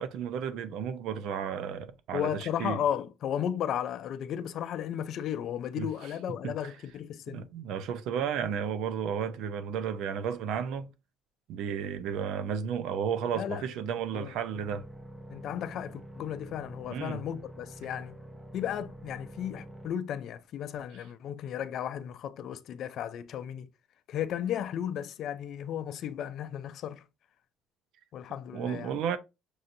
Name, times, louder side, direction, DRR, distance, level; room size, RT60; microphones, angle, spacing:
voice 1, 0.0-2.8 5.8-5.9 6.4-6.5 7.3-10.9 11.5-14.9 16.9-17.2 28.5-29.2, right 7 dB, 75° right, 0.6 m, -33 dB
voice 2, 2.1-7.5 13.3-13.7 14.1-14.3 15.3-18.2 18.5-23.7 24.1-27.0 28.1-29.0, left 9 dB, 60° left, 0.4 m, -34 dB
sound 1, 14.5-19.9, right 1 dB, 10° right, 0.6 m, -47 dB
6.2 x 2.6 x 2.5 m
cardioid pair, 105°, 0 cm